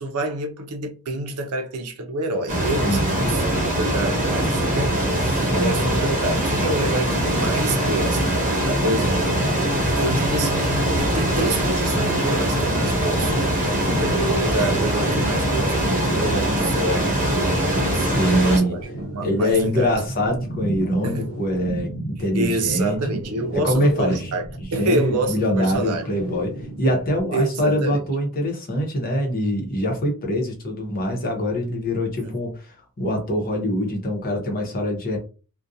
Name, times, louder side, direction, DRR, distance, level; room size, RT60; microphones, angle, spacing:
voice 1, 0.0-9.4 10.0-20.0 21.0-21.3 22.3-24.4 24.7-26.1 27.3-28.0 32.2-32.4, right 2 dB, 85° right, 0.6 m, -28 dB
sound 1, 2.5-18.6, right 1 dB, 35° right, 0.9 m, -22 dB
voice 2, 2.8-3.2 5.5-5.9 18.0-18.8 19.2-23.2 23.5-24.3 24.6-26.5 26.8-35.2, equal, 40° left, 0.8 m, -24 dB
sound 2, 9.0-27.2, right 1 dB, 90° left, 1.0 m, -35 dB
2.4 x 2.2 x 2.6 m
head